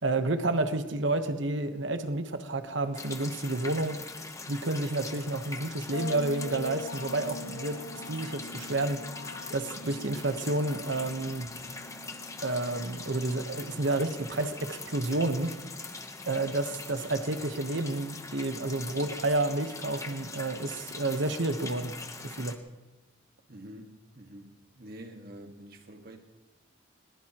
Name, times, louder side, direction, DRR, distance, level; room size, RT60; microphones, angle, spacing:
voice 1, 0.0-4.0 4.5-9.0 9.5-11.5 12.4-15.5 15.8-16.0 16.3-21.9 22.2-22.6, right 2 dB, 65° right, 9 dB, 1.2 m, -30 dB
sound 1, 2.9-22.6, left 3 dB, 15° left, 1.0 m, -42 dB
an unformantanate discovery, 5.9-13.5, left 3 dB, 75° left, 0.6 m, -44 dB
voice 2, 23.5-26.2, right 1 dB, 50° right, 4 dB, 1.8 m, -47 dB
21.0 x 19.5 x 3.0 m, 1.1 s
head